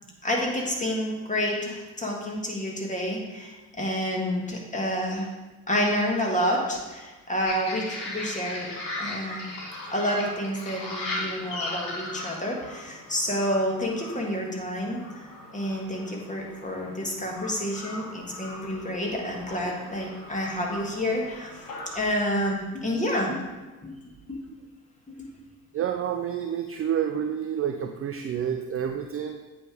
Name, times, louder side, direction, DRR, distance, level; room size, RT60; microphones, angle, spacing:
voice 1, 0.2-5.3 5.7-8.7 9.0-9.4 9.9-15.3 15.5-21.6 21.9-23.5 23.8-24.0 24.3-24.4 25.1-25.3, equal, 15° left, -1 dB, 1.9 m, -29 dB
sound 1, 7.4-22.0, left 2 dB, 65° left, 2.1 m, -38 dB
voice 2, 25.7-29.4, right 9 dB, 30° right, 5 dB, 0.5 m, -29 dB
8.4 x 3.4 x 4.9 m, 1.2 s
hypercardioid pair, 60°, 47 cm